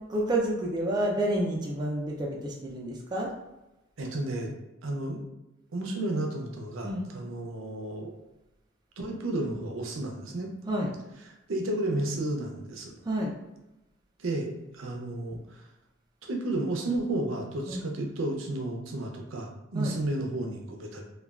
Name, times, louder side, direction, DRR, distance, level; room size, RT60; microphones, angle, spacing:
voice 1, 0.0-3.3 6.8-7.1 10.7-10.9 13.0-13.3 17.7-17.8 19.7-20.0, right 1 dB, 20° right, -3 dB, 0.4 m, -29 dB
voice 2, 4.0-4.5 4.8-5.2 5.7-8.1 9.0-10.5 11.3-13.0 14.2-15.7 16.2-21.0, right 1 dB, 70° right, 1 dB, 0.6 m, -32 dB
3.1 x 2.2 x 2.3 m, 0.98 s
head